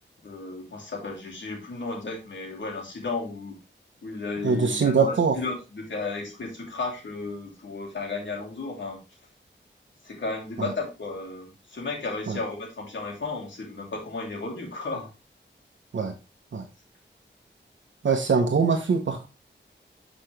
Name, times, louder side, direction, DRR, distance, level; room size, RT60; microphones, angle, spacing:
voice 1, 0.2-3.6 4.0-9.0 10.0-15.1, left 3 dB, 75° left, -2 dB, 2.9 m, -34 dB
voice 2, 4.4-5.4 10.6-10.7 12.3-12.4 15.9-16.1 16.5-16.6 18.0-19.3, right 5 dB, 75° right, 3 dB, 1.0 m, -23 dB
7.8 x 5.1 x 3.3 m, 0.28 s
wide cardioid pair, 90°, 19 cm